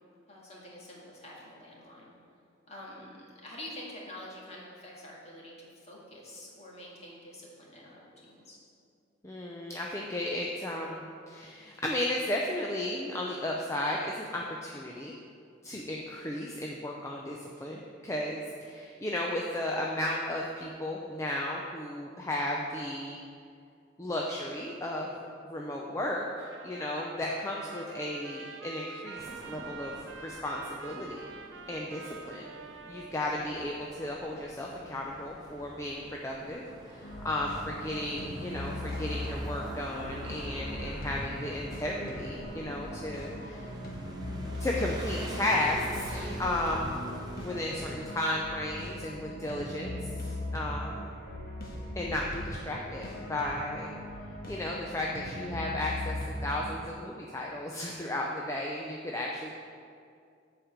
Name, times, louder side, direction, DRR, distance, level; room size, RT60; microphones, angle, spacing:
voice 1, 0.3-2.1 2.7-8.6, left 1 dB, 35° left, -4 dB, 1.8 m, -47 dB
voice 2, 9.2-15.1 15.6-23.2 24.0-25.1 25.4-31.3 31.7-32.5 32.9-43.7 44.6-47.0 47.4-50.0 50.5-51.2 52.0-53.9 54.5-59.5, left 1 dB, 15° left, -2 dB, 0.5 m, -34 dB
Trumpet, 26.2-34.4, right 5 dB, 70° right, 0.6 m, -47 dB
sound 1, 29.1-48.2, right 1 dB, 20° right, 0.9 m, -45 dB
sound 2, 37.0-56.9, left 1 dB, 50° left, 1.3 m, -39 dB
7.5 x 5.1 x 7.3 m, 2.4 s
head